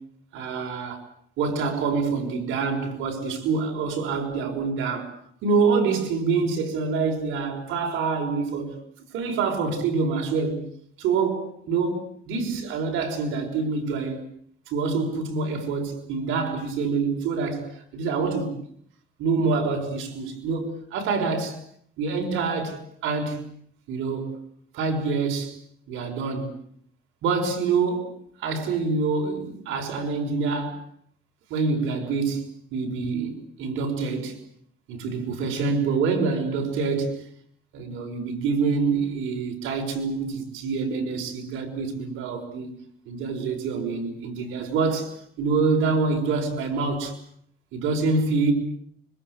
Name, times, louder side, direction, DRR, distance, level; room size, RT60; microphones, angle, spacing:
voice 1, 0.3-1.0 1.4-5.1 5.4-8.8 9.1-10.6 11.0-14.2 14.7-18.6 19.2-21.6 22.0-23.4 23.9-24.3 24.7-25.6 25.9-26.5 27.2-28.1 28.4-30.9 31.5-34.4 34.9-37.3 37.7-42.8 43.1-47.2 47.7-48.5, right 4 dB, 90° right, 5.8 m, -26 dB
25.5 x 24.5 x 8.1 m
cardioid pair, 90°, 20 cm